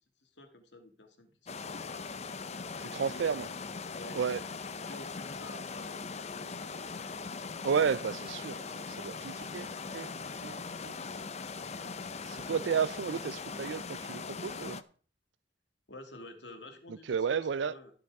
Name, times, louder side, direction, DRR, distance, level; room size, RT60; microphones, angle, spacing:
voice 1, 0.2-2.1 2.4-3.3 3.9-4.5 4.8-6.9 11.6-12.7 15.9-17.9, left 1 dB, 70° left, 2.2 m, -52 dB
sound 1, 1.5-14.8, left 4 dB, 35° left, 0.7 m, -40 dB
voice 2, 2.9-3.5 4.1-4.4 7.6-10.1 10.4-10.6 10.8-11.0 12.2-14.8 17.1-17.7, right 6 dB, 70° right, 0.4 m, -32 dB
15.5 x 7.1 x 4.8 m
head